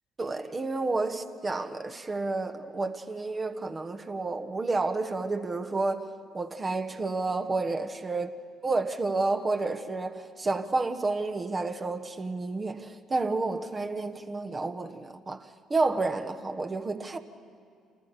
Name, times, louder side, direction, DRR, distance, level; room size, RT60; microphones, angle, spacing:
voice 1, 0.2-6.1 6.3-8.3 8.6-17.2, right 3 dB, 30° right, 1.2 m, -30 dB
27.5 x 14.5 x 6.9 m
hypercardioid pair, 50°, 0 cm